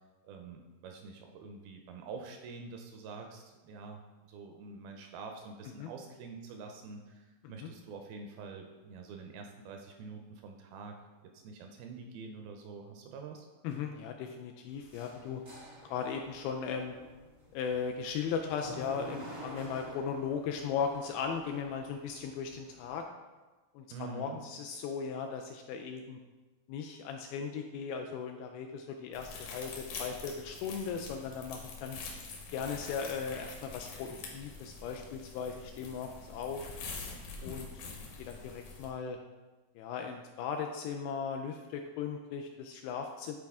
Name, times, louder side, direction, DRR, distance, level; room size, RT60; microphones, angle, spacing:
voice 1, 0.2-11.0 11.2-13.5 23.9-24.4, right 4 dB, 80° right, 3 dB, 2.3 m, -46 dB
voice 2, 13.6-15.4 15.9-17.0 17.5-23.1 23.8-26.2 26.7-32.0 32.5-36.6 37.4-37.7 38.2-39.2 39.8-43.4, left 6 dB, 85° left, 4 dB, 2.2 m, -37 dB
sound 1, 14.7-23.0, equal, 40° right, 0.8 m, -50 dB
sound 2, 29.1-38.9, left 4 dB, 65° left, 2.7 m, -45 dB
10.0 x 4.4 x 3.5 m, 1.2 s
omnidirectional pair, 4.6 m